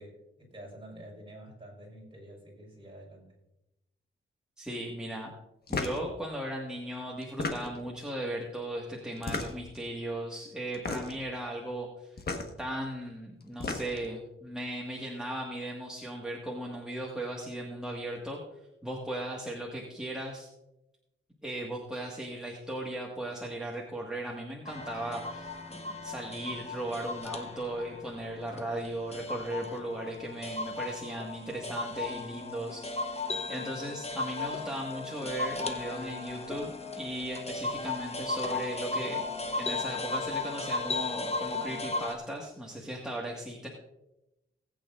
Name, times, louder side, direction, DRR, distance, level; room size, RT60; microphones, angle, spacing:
voice 1, 0.0-3.3, right 1 dB, 25° right, -2 dB, 4.7 m, -48 dB
voice 2, 4.6-5.3 5.7-12.2 12.6-18.4 18.8-20.5 21.4-33.2 33.5-39.2 39.5-43.7, right 1 dB, 5° right, -3 dB, 1.7 m, -37 dB
sound 1, 5.7-6.0 7.2-7.9 9.2-9.8 10.7-11.2 12.2-12.5 13.4-14.1, left 3 dB, 50° left, 1.4 m, -34 dB
sound 2, 24.7-42.2, left 3 dB, 30° left, 0.9 m, -36 dB
19.5 x 8.8 x 2.5 m, 0.93 s
wide cardioid pair, 120°, 21 cm